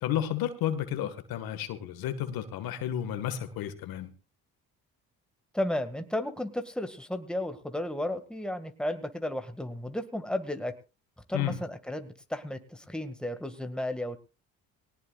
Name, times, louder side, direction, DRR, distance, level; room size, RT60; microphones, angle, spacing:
voice 1, 0.0-4.1 11.3-11.6, left 11 dB, 80° left, 9 dB, 1.8 m, -32 dB
voice 2, 5.5-10.7 11.3-14.2, left 1 dB, ahead, 8 dB, 2.0 m, -33 dB
19.0 x 18.5 x 2.5 m, 0.32 s
supercardioid pair, 70°, 35 cm